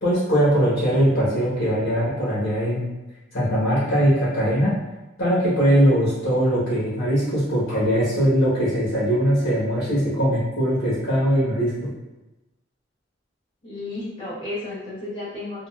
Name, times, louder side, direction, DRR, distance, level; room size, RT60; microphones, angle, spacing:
voice 1, 0.0-2.9 3.3-4.7 5.2-11.7, equal, 85° left, -8 dB, 1.1 m, -21 dB
voice 2, 13.6-15.7, left 2 dB, 25° left, -11 dB, 1.1 m, -33 dB
3.6 x 2.2 x 2.3 m, 1.0 s
head